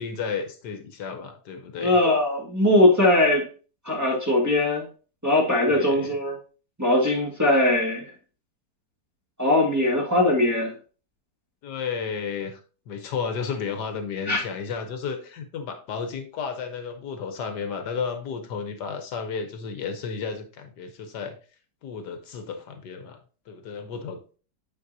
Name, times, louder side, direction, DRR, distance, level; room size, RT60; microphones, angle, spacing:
voice 1, 0.0-2.0 5.7-6.1 11.6-12.6 12.9-21.4 21.8-23.2 23.5-24.2, left 6 dB, 70° left, 7 dB, 1.4 m, -33 dB
voice 2, 1.8-3.5 3.8-4.8 5.2-6.4 6.8-8.1 9.4-10.7 14.3-14.4, left 1 dB, 10° right, -3 dB, 1.5 m, -20 dB
9.2 x 4.7 x 2.7 m, 0.37 s
omnidirectional pair, 1.9 m